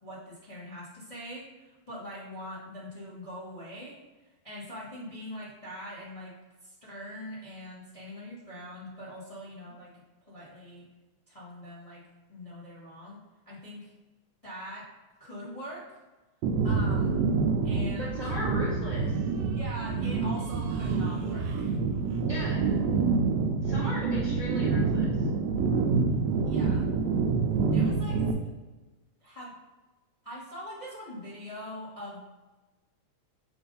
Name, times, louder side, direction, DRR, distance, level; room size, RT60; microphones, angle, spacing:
voice 1, 0.0-4.0 4.4-6.3 6.6-10.0 10.3-10.8 11.3-12.0 12.3-13.2 13.4-13.9 14.4-14.9 15.2-16.0 16.6-17.3 17.6-18.3 19.4-21.8 26.4-26.9 27.7-28.3 29.2-29.5 30.2-32.2, equal, 30° left, -7 dB, 0.6 m, -42 dB
sound 1, 16.4-28.3, right 4 dB, 80° right, 1.6 m, -27 dB
voice 2, 17.9-19.2 22.3-22.6 23.6-25.3, equal, 15° right, -7 dB, 1.0 m, -37 dB
6.9 x 2.6 x 5.4 m, 1.2 s
omnidirectional pair, 3.4 m